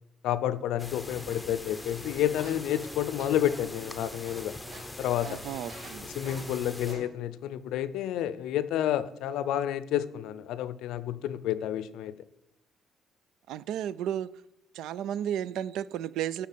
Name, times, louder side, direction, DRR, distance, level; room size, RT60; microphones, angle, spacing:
voice 1, 0.2-4.6 5.0-5.4 6.1-12.1, left 11 dB, 85° left, 0.6 m, -30 dB
sound 1, 0.8-6.9, left 2 dB, 5° left, 0.6 m, -42 dB
sound 2, 2.0-4.9 5.2-5.4 5.7-5.9 6.2-6.6 6.9-7.0, right 3 dB, 40° right, 4.6 m, -47 dB
voice 2, 5.2-6.1 13.5-14.3 14.7-16.5, right 10 dB, 80° right, 0.4 m, -33 dB
11.5 x 4.2 x 7.5 m
cardioid pair, 160°, 0 cm